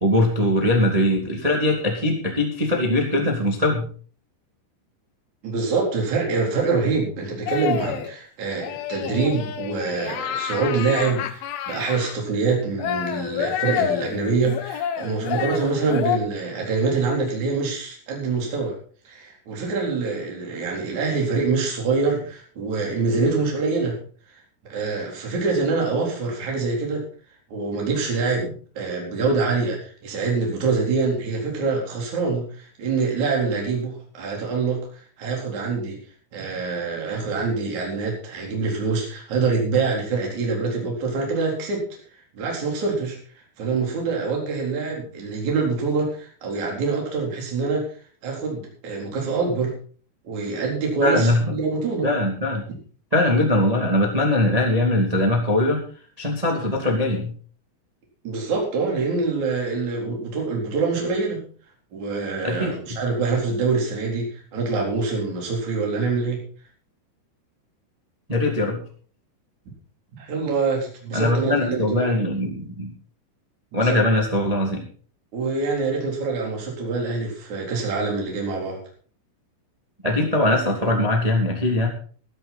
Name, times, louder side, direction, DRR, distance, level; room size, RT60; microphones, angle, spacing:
voice 1, 0.0-3.9 51.0-51.5 52.0-52.7 53.1-55.8 56.2-57.3 62.4-62.7 68.3-68.8 71.1-72.9 73.7-74.8 80.0-81.9, left 1 dB, 75° right, 1 dB, 0.3 m, -21 dB
voice 2, 5.4-18.7 19.0-24.0 24.7-27.0 27.5-34.9 35.2-36.0 36.3-41.8 42.3-43.2 43.6-47.8 48.2-49.7 50.2-52.1 58.2-61.4 61.9-66.4 70.2-72.2 73.7-74.0 75.3-78.8, right 4 dB, 40° right, -1 dB, 4.9 m, -25 dB
sound 1, 7.5-8.1 8.6-12.2 12.8-16.2, left 9 dB, 75° left, 2.3 m, -29 dB
14.5 x 12.5 x 4.2 m, 0.43 s
omnidirectional pair, 5.9 m